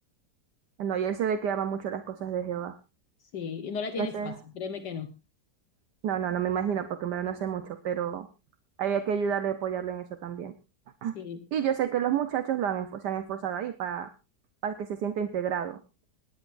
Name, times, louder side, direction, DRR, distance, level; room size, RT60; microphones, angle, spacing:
voice 1, 0.8-2.8 4.0-4.4 6.0-8.3 8.8-10.5 11.0-11.1 11.5-14.1 14.6-15.8, right 8 dB, 70° right, 8 dB, 1.4 m, -30 dB
voice 2, 3.3-5.1 11.1-11.4, left 6 dB, 70° left, 7 dB, 1.6 m, -35 dB
26.5 x 10.5 x 2.5 m, 0.28 s
omnidirectional pair, 1.9 m